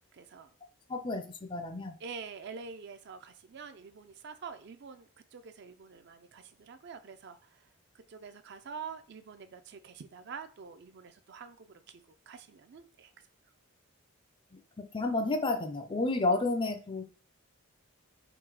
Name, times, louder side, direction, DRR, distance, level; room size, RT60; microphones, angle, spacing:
voice 1, 0.1-0.5 2.0-7.6 7.9-13.1, right 5 dB, 50° right, 0.4 m, -46 dB
voice 2, 0.9-2.0 14.8-17.0, left 2 dB, 20° left, 0.4 m, -31 dB
3.7 x 2.7 x 4.7 m
head